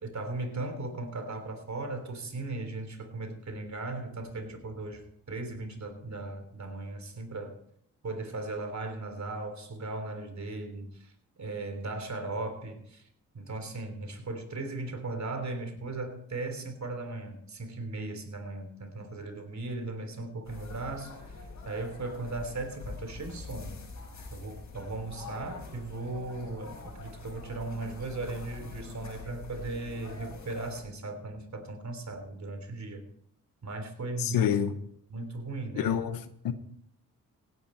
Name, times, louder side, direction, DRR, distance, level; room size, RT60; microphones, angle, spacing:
voice 1, 0.0-7.6 8.0-11.1 11.4-13.0 13.3-21.4 21.6-23.8 24.3-33.0 33.6-34.5 35.1-35.9, right 2 dB, 55° right, 3.4 m, -37 dB
sound 1, 20.4-30.8, left 3 dB, 60° left, 5.2 m, -45 dB
voice 2, 34.2-34.7 35.7-36.5, left 9 dB, 90° left, 1.0 m, -28 dB
16.5 x 10.5 x 4.4 m
supercardioid pair, 55°, 33 cm